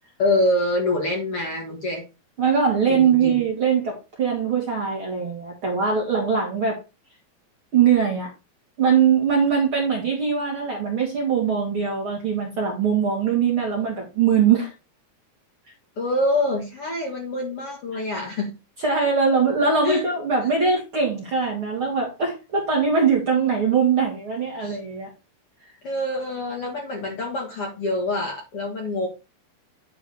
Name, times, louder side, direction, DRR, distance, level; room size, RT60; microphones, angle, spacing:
voice 1, 0.2-2.0 2.9-3.4 16.0-18.5 19.8-20.0 24.6-24.8 25.8-29.1, left 1 dB, 45° left, 2.1 m, -25 dB
voice 2, 2.4-6.8 7.7-8.3 8.8-14.7 17.9-18.0 18.8-25.1, right 6 dB, 45° right, 1.9 m, -21 dB
9.9 x 3.8 x 5.0 m
omnidirectional pair, 4.7 m